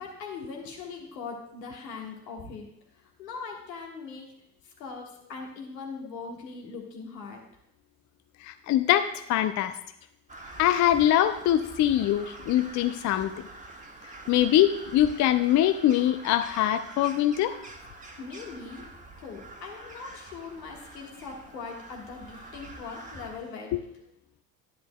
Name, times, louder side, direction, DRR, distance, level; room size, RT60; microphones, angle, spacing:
voice 1, 0.0-2.7 2.9-4.3 4.6-7.4 17.9-18.9 19.2-23.7, left 4 dB, 80° left, 1 dB, 1.6 m, -40 dB
voice 2, 8.4-9.7 10.6-13.3 14.3-17.6, left 12 dB, 40° left, 10 dB, 0.5 m, -23 dB
Crow, 10.3-23.4, right 2 dB, 15° right, 1.4 m, -46 dB
10.0 x 9.9 x 2.2 m, 0.77 s
figure-of-eight pair, 55°, 49 cm